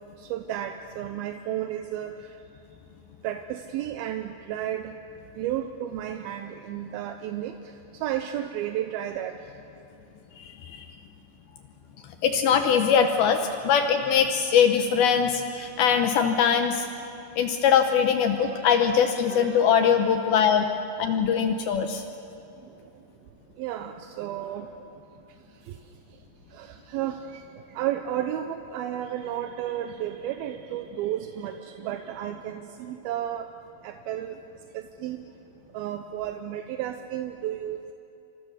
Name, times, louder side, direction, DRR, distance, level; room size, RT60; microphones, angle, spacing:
voice 1, 0.2-2.3 3.2-5.0 5.4-7.6 7.9-9.3 18.3-19.0 19.3-20.2 23.6-24.8 25.7-25.8 26.5-33.5 33.8-34.4 34.7-35.2 35.7-37.9, right 11 dB, 80° right, 7 dB, 2.3 m, -33 dB
voice 2, 10.4-10.9 12.2-16.9 17.4-20.7 21.0-22.0, left 7 dB, 75° left, 6 dB, 2.4 m, -22 dB
27.0 x 26.0 x 6.5 m, 2.8 s
omnidirectional pair, 5.1 m